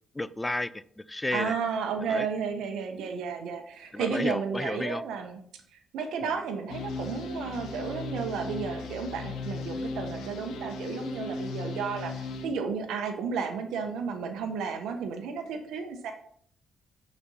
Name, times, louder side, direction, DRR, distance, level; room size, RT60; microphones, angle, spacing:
voice 1, 0.1-1.5 2.0-2.3 3.9-5.0, left 2 dB, 15° left, 17 dB, 0.4 m, -32 dB
voice 2, 1.3-16.1, right 5 dB, 85° right, 5 dB, 1.0 m, -33 dB
sound 1, 6.7-12.5, left 3 dB, 85° left, 1.3 m, -36 dB
9.3 x 4.3 x 5.5 m, 0.62 s
cardioid pair, 90°, 0 cm